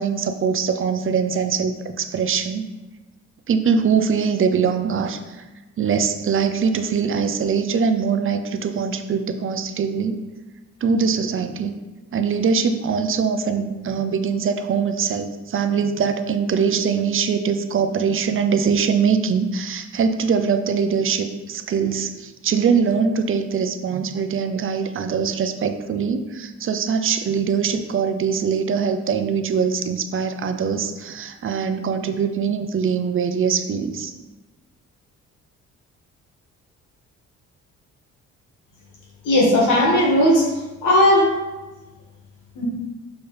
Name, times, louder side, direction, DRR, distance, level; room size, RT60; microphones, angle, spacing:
voice 1, 0.0-2.6 3.5-5.4 5.8-10.2 10.8-11.8 12.1-34.1, right 6 dB, 45° right, 8 dB, 0.6 m, -22 dB
voice 2, 39.2-40.5 40.8-41.3 42.6-42.7, left 1 dB, 90° left, -3 dB, 1.9 m, -16 dB
6.7 x 4.4 x 3.4 m, 1.2 s
cardioid pair, 90°, 30 cm